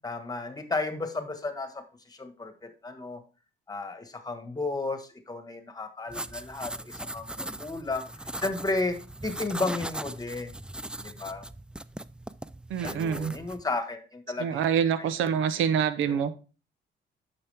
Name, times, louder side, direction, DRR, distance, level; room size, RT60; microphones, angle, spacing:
voice 1, 0.0-3.2 3.7-10.6 11.0-11.4 12.8-14.6 16.1-16.2, left 3 dB, 20° left, 8 dB, 1.4 m, -33 dB
sound 1, 6.1-13.6, right 1 dB, 5° right, 0.3 m, -39 dB
voice 2, 12.7-13.3 14.4-16.3, right 8 dB, 80° right, 13 dB, 0.8 m, -26 dB
8.9 x 6.1 x 3.4 m, 0.34 s
cardioid pair, 90°, 20 cm